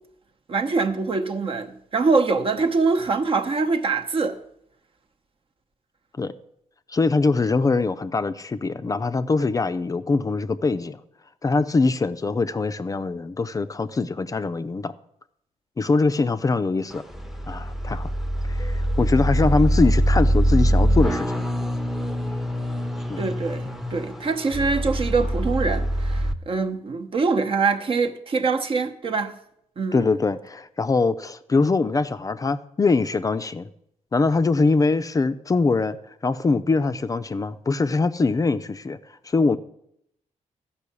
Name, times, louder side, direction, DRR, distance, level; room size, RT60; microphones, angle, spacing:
voice 1, 0.5-4.4 23.2-29.3 29.8-30.1, right 4 dB, 45° right, 0.9 m, -24 dB
voice 2, 6.9-11.0 11.4-14.9 15.8-17.0 17.5-18.1 18.5-21.5 23.1-23.2 29.9-33.7 34.1-36.0 36.2-39.0 39.2-39.6, left 3 dB, 25° left, 0.5 m, -23 dB
sound 1, 16.9-26.3, equal, ahead, 0.7 m, -23 dB
12.0 x 5.6 x 8.3 m
cardioid pair, 115°, 13 cm